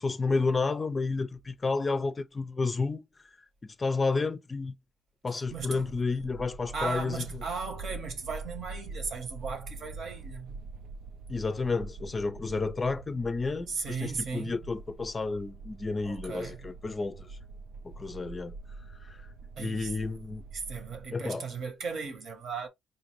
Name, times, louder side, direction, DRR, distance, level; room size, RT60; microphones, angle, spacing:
voice 1, 0.0-3.0 3.8-4.7 5.2-7.2 11.3-17.3 17.8-18.6 19.0-19.2 19.6-20.4 21.1-21.5, left 3 dB, 30° left, 0.4 m, -31 dB
voice 2, 5.3-5.9 6.7-10.6 13.7-14.6 16.0-16.6 19.6-19.9 20.5-22.7, right 5 dB, 65° right, 1.1 m, -36 dB
sound 1, 5.4-21.1, right 3 dB, 85° right, 0.4 m, -44 dB
4.2 x 2.5 x 3.1 m
cardioid pair, 90°, 0 cm